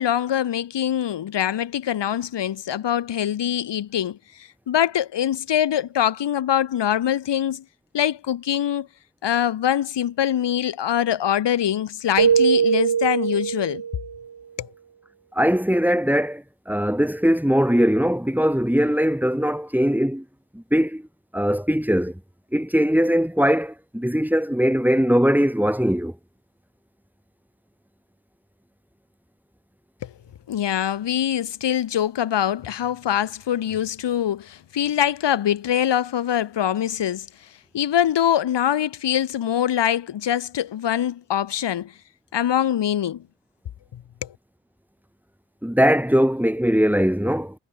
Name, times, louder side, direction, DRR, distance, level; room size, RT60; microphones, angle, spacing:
voice 1, 0.0-7.6 7.9-8.9 9.2-13.8 14.6-14.7 30.0-30.1 30.5-37.3 37.7-41.9 42.3-43.2 43.9-44.3, left 10 dB, 85° left, 1.8 m, -23 dB
Keyboard (musical), 12.2-14.2, right 7 dB, 60° right, 2.0 m, -21 dB
voice 2, 15.3-20.2 20.5-21.1 21.3-22.2 22.5-26.1 45.6-47.5, equal, 5° right, 3.4 m, -20 dB
supercardioid pair, 40°, 42 cm